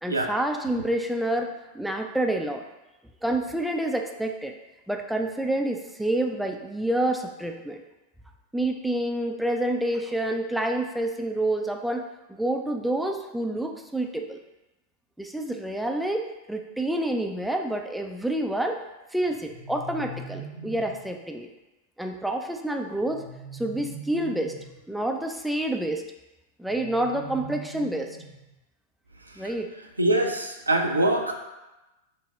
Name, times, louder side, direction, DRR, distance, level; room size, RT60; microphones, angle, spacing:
voice 1, 0.0-2.6 3.2-4.5 4.9-7.8 8.5-12.0 12.3-14.4 15.2-18.8 19.1-21.5 22.0-23.2 23.5-24.5 24.9-26.0 26.6-28.2 29.4-29.7, right 1 dB, ahead, 3 dB, 0.3 m, -28 dB
sound 1, 19.2-21.1 22.9-24.8 26.6-28.6, right 1 dB, 85° left, 1.3 m, -42 dB
voice 2, 30.0-31.3, right 1 dB, 80° right, 3 dB, 0.4 m, -24 dB
5.4 x 2.0 x 3.3 m, 1.0 s
figure-of-eight pair, 90°, 0 cm